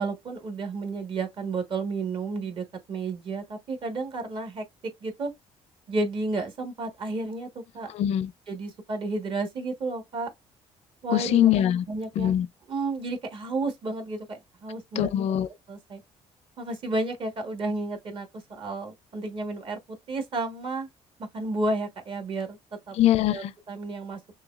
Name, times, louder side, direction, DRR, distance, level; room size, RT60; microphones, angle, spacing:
voice 1, 0.0-5.3 5.9-7.9 8.5-10.3 11.0-11.5 11.9-12.3 12.7-15.1 15.7-16.0 16.6-20.9 21.3-22.6 22.9-23.0 23.3-24.2, right 3 dB, 50° right, 1.4 m, -32 dB
voice 2, 7.9-8.3 11.1-11.8 12.2-12.5 14.9-15.5 22.9-23.5, left 12 dB, 65° left, 0.5 m, -22 dB
6.2 x 2.3 x 2.4 m
cardioid pair, 125°, 12 cm